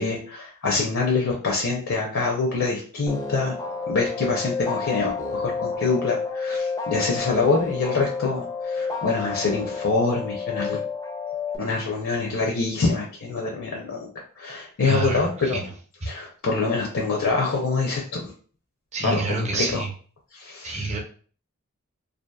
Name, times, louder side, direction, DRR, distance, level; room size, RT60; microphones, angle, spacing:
voice 1, 0.0-3.5 3.9-10.8 11.6-14.1 14.4-15.6 16.1-18.3 19.0-19.8 20.3-20.9, left 4 dB, 65° left, -1 dB, 0.5 m, -25 dB
sound 1, 3.1-11.6, left 4 dB, 15° left, 0.4 m, -30 dB
voice 2, 14.8-15.7 18.9-19.9 20.6-21.0, right 3 dB, 30° right, 0 dB, 0.6 m, -28 dB
2.7 x 2.4 x 2.3 m, 0.43 s
head